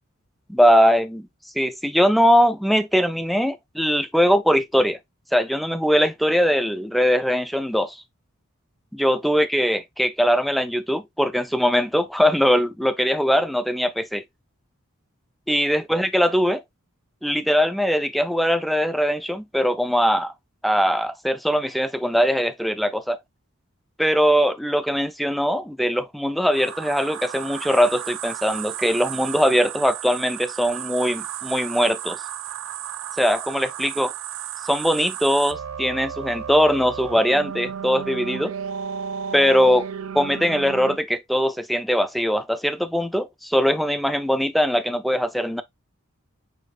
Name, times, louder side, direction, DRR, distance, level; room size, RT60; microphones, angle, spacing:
voice 1, 0.5-1.3 1.6-5.0 5.3-8.0 8.9-14.2 15.5-16.6 17.2-20.3 20.6-23.2 24.0-32.2 33.2-34.1 34.6-38.5 39.3-39.9 40.1-45.6, equal, ahead, 0.3 m, -21 dB
sound 1, 26.5-41.0, right 8 dB, 70° right, 0.4 m, -33 dB
5.2 x 4.2 x 2.4 m
head